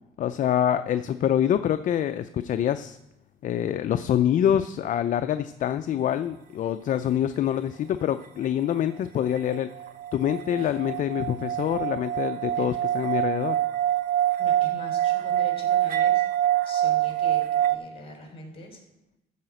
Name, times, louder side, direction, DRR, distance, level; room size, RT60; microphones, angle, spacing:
voice 1, 0.2-3.0 3.4-9.7 10.1-13.6, left 10 dB, 50° left, 10 dB, 0.5 m, -25 dB
sound 1, 9.4-17.8, right 12 dB, 55° right, 0.6 m, -25 dB
voice 2, 14.4-16.2 16.6-18.8, left 2 dB, 35° left, 2 dB, 4.0 m, -42 dB
14.0 x 5.0 x 7.7 m, 0.90 s
cardioid pair, 110°, 17 cm